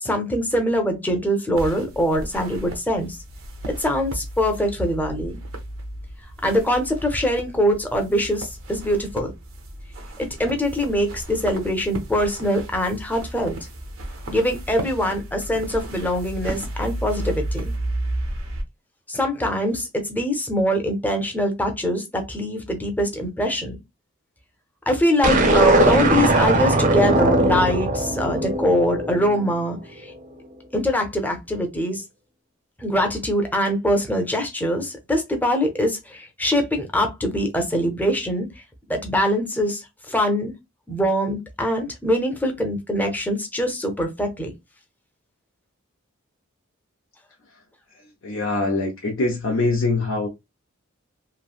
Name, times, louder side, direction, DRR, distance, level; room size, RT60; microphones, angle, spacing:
voice 1, 0.0-3.2 3.6-5.3 6.4-9.3 10.2-13.6 14.3-17.6 19.1-23.8 24.9-30.1 30.7-32.0 32.8-38.5 38.9-40.5 40.9-44.5, equal, 10° left, 0.7 m, -23 dB
sound 1, 1.5-18.6, right 1 dB, 80° right, 0.8 m, -33 dB
sound 2, 25.2-29.6, right 2 dB, 40° right, 0.6 m, -19 dB
voice 2, 47.9-50.3, left 3 dB, 70° left, 0.7 m, -24 dB
3.0 x 2.6 x 2.4 m
head